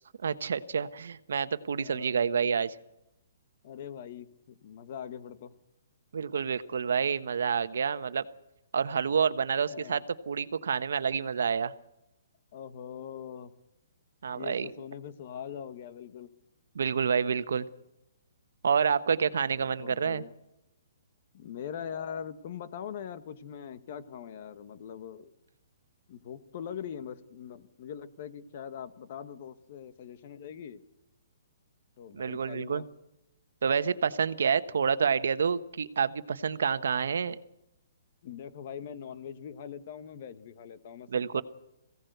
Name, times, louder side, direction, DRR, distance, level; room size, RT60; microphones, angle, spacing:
voice 1, 0.2-2.8 6.1-8.3 8.7-11.7 14.2-14.7 16.7-17.7 18.6-20.2 32.1-32.8 33.6-37.4 41.1-41.4, right 6 dB, 75° right, 13 dB, 1.1 m, -28 dB
voice 2, 1.7-2.3 3.6-5.5 9.7-10.0 12.5-13.5 14.3-16.3 19.5-20.3 21.3-25.3 26.1-30.8 32.0-32.9 38.2-41.4, left 8 dB, 40° left, 12 dB, 1.4 m, -42 dB
22.0 x 16.5 x 8.0 m, 0.89 s
hypercardioid pair, 170°, 0 cm